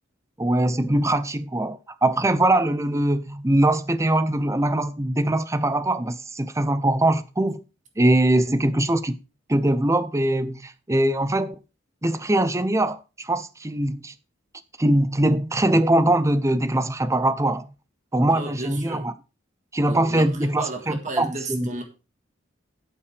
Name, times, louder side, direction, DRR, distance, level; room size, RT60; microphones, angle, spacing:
voice 1, 0.4-7.6 8.0-9.1 9.5-11.6 12.0-14.1 14.8-17.7 18.1-19.1 19.7-21.7, right 1 dB, 15° right, 0.6 m, -22 dB
voice 2, 18.2-19.1 19.8-21.8, right 2 dB, 40° right, 1.6 m, -34 dB
11.5 x 8.6 x 3.4 m
head